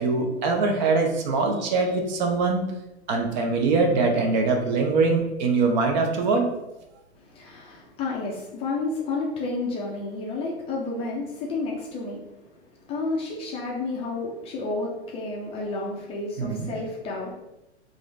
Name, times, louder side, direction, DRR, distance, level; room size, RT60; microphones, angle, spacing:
voice 1, 0.0-2.6 3.1-6.6 16.4-16.7, right 3 dB, 40° right, 3 dB, 0.7 m, -23 dB
voice 2, 7.3-12.2 12.9-17.4, left 3 dB, 15° left, -2 dB, 0.5 m, -31 dB
3.7 x 2.6 x 3.2 m, 0.94 s
figure-of-eight pair, 110°, 34 cm